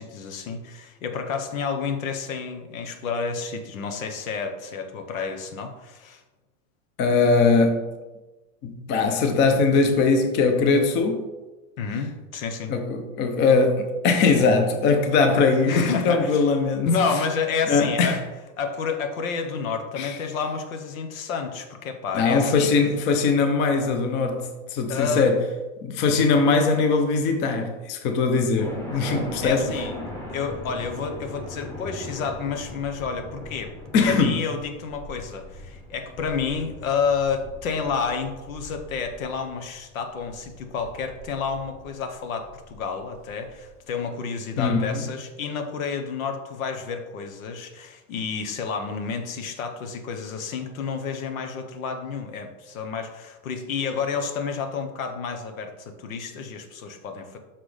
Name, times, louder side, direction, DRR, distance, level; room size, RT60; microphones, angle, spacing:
voice 1, 0.0-6.2 11.8-12.7 15.7-16.4 16.8-18.2 18.6-22.7 24.9-25.3 29.4-29.9 30.3-33.7 34.0-57.4, left 5 dB, 85° left, 1.1 m, -30 dB
voice 2, 7.0-7.9 8.6-11.2 12.7-16.9 17.7-18.2 20.0-20.2 22.1-25.4 25.8-29.6 33.9-34.4 44.6-45.1, left 4 dB, 25° left, 0.6 m, -21 dB
sound 1, 28.6-43.7, left 1 dB, 5° left, 0.9 m, -39 dB
5.9 x 5.9 x 3.3 m
supercardioid pair, 155°, 40 cm